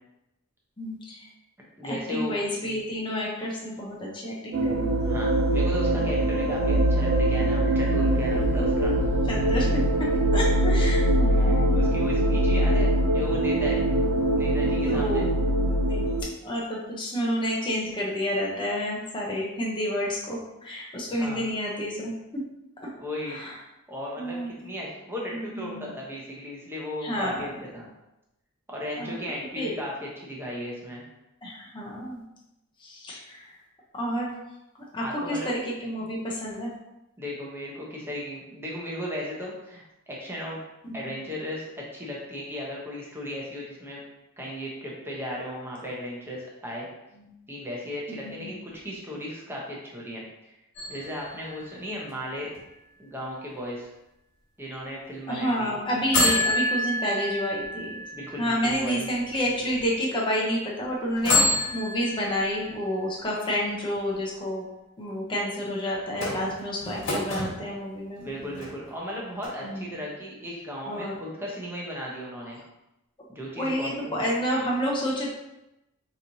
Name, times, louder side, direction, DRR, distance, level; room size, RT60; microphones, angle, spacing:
voice 1, 0.8-1.3 1.8-4.9 9.3-9.7 10.3-11.8 14.8-15.2 15.5-16.0 16.4-22.1 23.3-23.5 24.2-24.5 25.3-25.9 27.0-27.5 29.0-29.2 29.5-29.7 31.4-32.2 32.8-33.5 33.9-34.3 34.9-36.7 40.8-41.2 47.2-47.3 48.1-48.5 55.3-58.0 58.4-64.6 65.0-68.3 69.6-69.9 70.9-71.1 73.6-75.3, equal, 20° left, -4 dB, 0.7 m, -29 dB
voice 2, 1.8-2.3 5.0-8.9 11.3-13.8 14.4-15.2 21.2-21.5 23.0-23.4 23.9-27.9 28.7-31.0 35.0-35.5 37.2-40.6 40.9-44.0 44.4-46.9 47.5-50.5 50.9-52.5 53.0-53.9 54.6-55.8 58.1-59.1 68.2-72.6 73.3-74.1, left 1 dB, 10° right, -4 dB, 0.8 m, -36 dB
sound 1, 4.5-16.2, right 1 dB, 60° right, 0.4 m, -23 dB
sound 2, 50.8-52.6 56.1-59.2 59.8-59.9 61.2-63.0 66.1-67.5 68.2-69.1 69.4-69.5, left 1 dB, 55° left, 1.4 m, -28 dB
4.1 x 3.0 x 2.7 m, 0.91 s
head